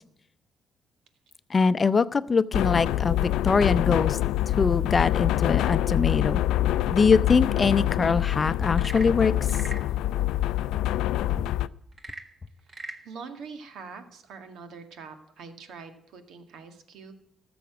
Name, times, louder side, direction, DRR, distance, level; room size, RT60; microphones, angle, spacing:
voice 1, 1.5-4.2 4.6-6.4 6.9-9.3, left 5 dB, 35° left, 16 dB, 0.6 m, -23 dB
sound 1, 2.5-11.7, left 13 dB, 90° left, 0.4 m, -25 dB
Frog / Percussion / Wood, 8.7-9.9 11.9-13.1, right 2 dB, 35° right, 1.6 m, -41 dB
voice 2, 13.0-17.1, right 5 dB, 80° right, 8 dB, 1.9 m, -44 dB
13.5 x 7.1 x 8.1 m, 0.77 s
cardioid pair, 90°, 0 cm